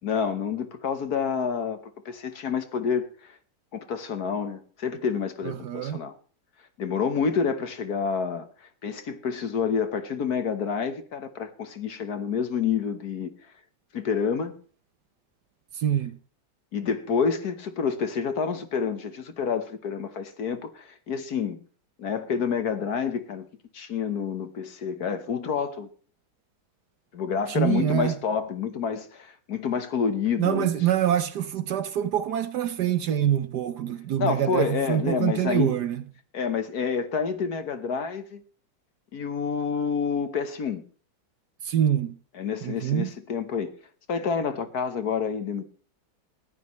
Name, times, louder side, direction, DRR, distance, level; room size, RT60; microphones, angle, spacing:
voice 1, 0.0-3.3 3.7-6.1 6.8-13.3 13.9-14.5 16.7-21.6 22.0-23.5 23.7-25.9 27.1-30.7 34.2-35.8 36.3-38.4 39.1-40.8 42.3-43.7 44.1-45.6, left 6 dB, 55° left, 1.5 m, -28 dB
voice 2, 5.4-6.0 15.8-16.2 27.5-28.1 30.4-36.0 41.6-42.2 42.6-43.1, right 10 dB, 65° right, 1.2 m, -25 dB
20.5 x 14.5 x 3.1 m
omnidirectional pair, 2.2 m